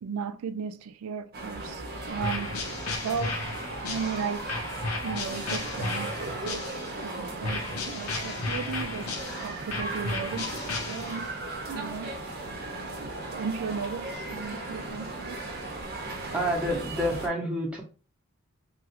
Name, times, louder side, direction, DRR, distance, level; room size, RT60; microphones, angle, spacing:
voice 1, 0.0-2.6 3.0-3.4 3.9-4.7 5.0-6.2 6.5-9.1 9.4-11.3 11.7-12.1 12.8-15.4, right 6 dB, 70° right, 0.3 m, -36 dB
sound 1, 1.3-17.3, right 2 dB, 45° right, 0.7 m, -36 dB
sound 2, 2.2-7.0 7.4-11.4, left 3 dB, 75° left, 0.7 m, -34 dB
voice 2, 16.3-17.8, equal, 5° right, 0.7 m, -29 dB
2.9 x 2.4 x 2.8 m
head